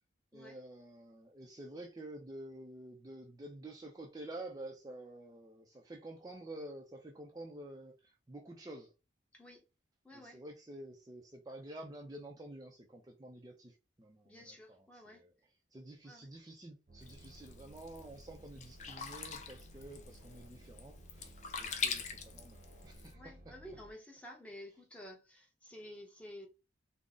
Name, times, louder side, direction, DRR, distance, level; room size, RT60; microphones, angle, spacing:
voice 1, 0.3-8.9 10.1-15.3 15.7-21.3 21.6-23.5, right 1 dB, 20° right, 0.4 m, -49 dB
voice 2, 10.0-10.4 14.2-15.2 16.0-16.3 23.1-26.5, left 1 dB, 5° left, 0.8 m, -52 dB
sound 1, 16.9-23.9, right 1 dB, 45° right, 0.7 m, -57 dB
Sink (filling or washing), 17.0-23.1, left 6 dB, 40° left, 0.5 m, -43 dB
3.8 x 2.0 x 3.6 m
head